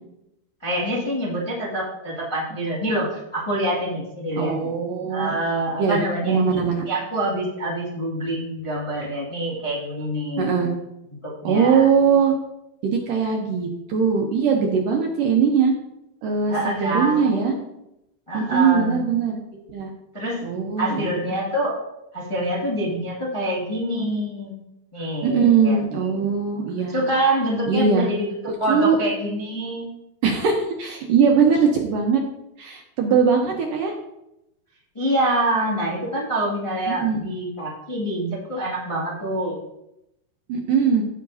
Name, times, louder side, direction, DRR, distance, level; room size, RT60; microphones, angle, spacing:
voice 1, 0.6-4.7 5.1-10.8 11.2-11.9 16.5-17.6 18.3-19.1 20.1-20.4 20.8-21.8 22.1-24.5 24.9-26.2 26.8-29.9 34.9-39.6, right 1 dB, 50° left, -6 dB, 0.3 m, -26 dB
voice 2, 4.4-5.3 5.8-6.8 10.4-10.7 11.4-12.3 12.8-15.7 16.2-17.5 18.3-19.9 20.4-21.4 25.2-27.0 27.7-28.1 28.7-29.0 30.2-32.2 32.6-33.9 36.9-37.2 40.5-41.0, right 6 dB, 75° right, 1 dB, 2.0 m, -21 dB
16.0 x 5.7 x 2.7 m, 0.86 s
omnidirectional pair, 4.9 m